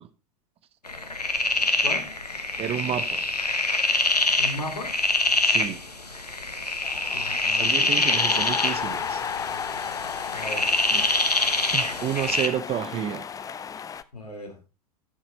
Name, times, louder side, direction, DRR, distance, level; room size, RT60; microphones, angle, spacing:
sound 1, 0.8-12.5, left 2 dB, 90° left, 1.3 m, -25 dB
voice 1, 2.6-3.2 5.4-5.8 7.5-9.2 10.9-11.0 11.7-13.2, right 10 dB, 30° right, 1.0 m, -30 dB
voice 2, 4.4-5.0 7.1-7.9 10.3-10.7 14.1-14.6, left 2 dB, 75° left, 4.1 m, -36 dB
sound 2, 6.8-14.0, left 7 dB, 15° left, 0.6 m, -33 dB
13.0 x 7.2 x 4.2 m
figure-of-eight pair, 90°, 20 cm